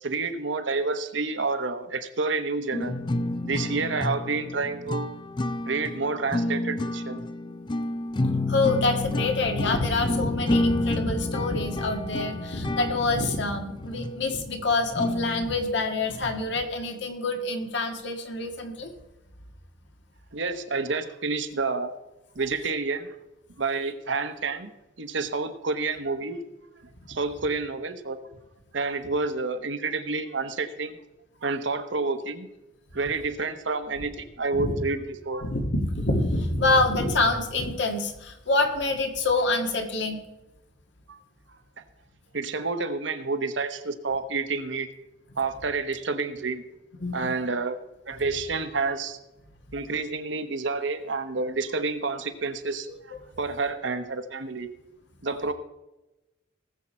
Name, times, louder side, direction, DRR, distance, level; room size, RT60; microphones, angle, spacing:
voice 1, 0.0-2.9 3.4-5.2 5.7-7.2 20.3-21.9 22.3-23.1 23.6-24.7 25.0-26.4 27.1-28.3 28.7-31.0 31.4-32.5 32.9-35.5 41.1-41.2 42.3-44.9 45.4-46.6 47.1-47.8 48.1-49.2 49.7-54.7 55.2-55.5, right 3 dB, 70° right, 8 dB, 1.1 m, -29 dB
sound 1, 2.7-15.5, left 2 dB, 25° left, 0.4 m, -30 dB
voice 2, 8.5-18.9 34.6-34.8 35.4-40.2 47.0-47.4 55.3-55.4, left 2 dB, 65° left, 4 dB, 1.8 m, -26 dB
19.0 x 7.6 x 4.4 m, 0.99 s
head